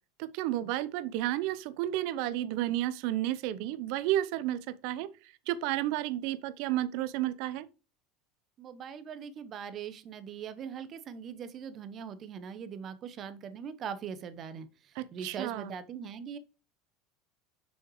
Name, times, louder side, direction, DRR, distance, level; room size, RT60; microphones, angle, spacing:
voice 1, 0.2-5.1 5.5-7.7 15.0-15.7, right 14 dB, 65° right, 0.7 m, -32 dB
voice 2, 8.6-16.4, right 7 dB, 45° right, 1.0 m, -41 dB
6.5 x 6.4 x 3.1 m
hypercardioid pair, 80°, 0 cm